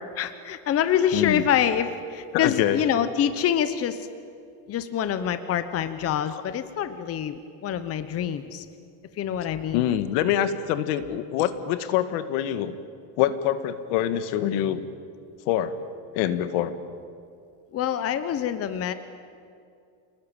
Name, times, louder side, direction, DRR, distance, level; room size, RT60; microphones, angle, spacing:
voice 1, 0.2-4.1 4.7-8.6 9.2-9.8 17.7-18.9, left 9 dB, 30° left, 11 dB, 1.0 m, -26 dB
voice 2, 1.1-1.5 2.3-2.8 6.3-6.4 9.7-12.7 13.2-14.8 15.4-15.8 16.1-16.7, left 11 dB, 70° left, 11 dB, 1.8 m, -25 dB
28.5 x 20.0 x 9.0 m, 2.4 s
cardioid pair, 145°, 46 cm